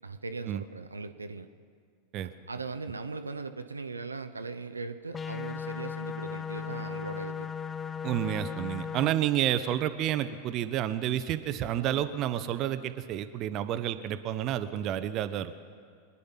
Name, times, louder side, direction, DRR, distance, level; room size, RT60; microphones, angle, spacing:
voice 1, 0.0-1.5 2.5-7.5, right 3 dB, 80° right, 8 dB, 0.7 m, -39 dB
sound 1, 5.1-9.1, left 7 dB, 15° left, 0.6 m, -36 dB
voice 2, 8.0-15.5, right 11 dB, 35° right, 11 dB, 0.8 m, -30 dB
25.0 x 10.0 x 5.8 m, 2.1 s
figure-of-eight pair, 90°, 0 cm